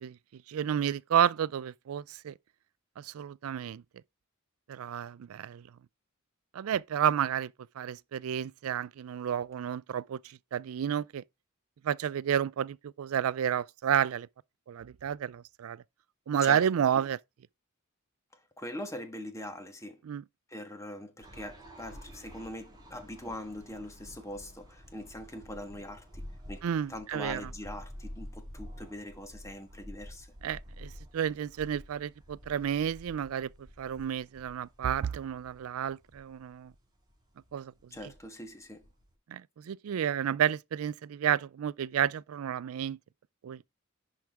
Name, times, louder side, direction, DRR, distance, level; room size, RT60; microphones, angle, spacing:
voice 1, 0.0-2.3 3.0-3.8 4.7-5.7 6.5-11.2 11.8-14.3 14.7-15.8 16.3-17.2 20.0-20.2 26.6-27.5 30.4-36.7 37.5-37.7 39.3-43.0 43.4-43.6, right 9 dB, 80° right, 0.4 m, -31 dB
voice 2, 18.3-20.0 20.5-26.2 26.5-30.3 37.9-38.8, left 1 dB, 15° left, 1.4 m, -42 dB
sound 1, 21.2-39.1, equal, 20° right, 4.4 m, -49 dB
10.5 x 4.8 x 3.4 m
head